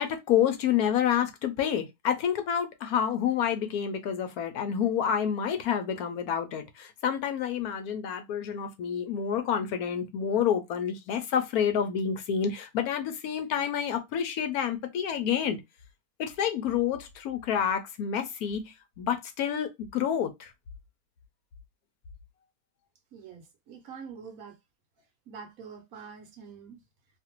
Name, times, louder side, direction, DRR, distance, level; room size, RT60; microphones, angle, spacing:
voice 1, 0.0-15.6 16.2-20.5, left 8 dB, 75° left, 1.0 m, -28 dB
voice 2, 23.1-24.6 25.3-26.8, right 6 dB, 65° right, 1.0 m, -45 dB
2.6 x 2.5 x 2.8 m
omnidirectional pair, 1.7 m